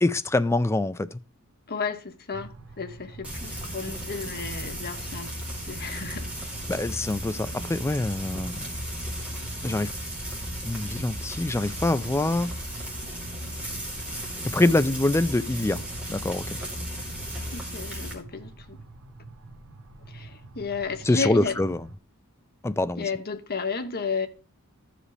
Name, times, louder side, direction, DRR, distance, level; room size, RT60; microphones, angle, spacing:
voice 1, 0.0-1.2 6.7-8.8 9.6-9.9 10.6-12.5 14.5-15.8 16.1-16.4 21.1-21.8 22.6-23.0, left 2 dB, 10° left, 0.4 m, -25 dB
voice 2, 1.7-5.4 5.7-6.3 17.5-18.8 20.1-21.6 23.0-24.3, left 5 dB, 45° left, 1.0 m, -33 dB
sound 1, 2.3-22.0, right 3 dB, 65° right, 1.0 m, -46 dB
Frying (food), 3.2-18.1, equal, 5° right, 2.6 m, -35 dB
14.5 x 5.0 x 3.2 m
head